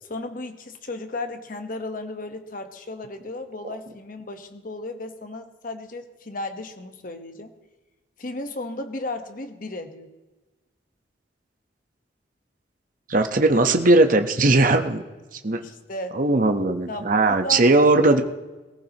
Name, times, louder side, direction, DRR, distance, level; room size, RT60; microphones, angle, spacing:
voice 1, 0.0-7.5 8.2-10.1 15.5-16.2 16.9-17.7, left 2 dB, 50° left, 6 dB, 1.1 m, -35 dB
voice 2, 13.1-15.0 15.4-15.6 16.1-18.2, right 2 dB, 45° right, 6 dB, 1.0 m, -18 dB
22.0 x 15.0 x 3.0 m, 1.2 s
head